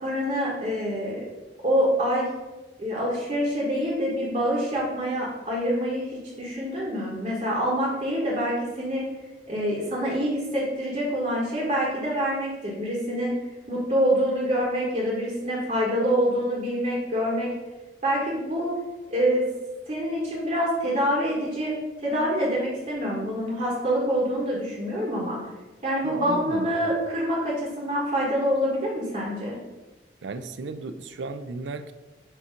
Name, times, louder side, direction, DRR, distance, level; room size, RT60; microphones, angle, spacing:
voice 1, 0.0-1.2 1.6-2.3 2.8-9.1 9.5-13.4 13.7-17.5 18.0-18.7 19.1-19.5 19.9-21.7 22.0-25.4 25.8-29.6, equal, 40° right, -4 dB, 1.3 m, -26 dB
voice 2, 26.0-26.9 30.2-31.9, right 3 dB, 90° right, 10 dB, 0.5 m, -35 dB
6.8 x 2.9 x 5.0 m, 1.1 s
head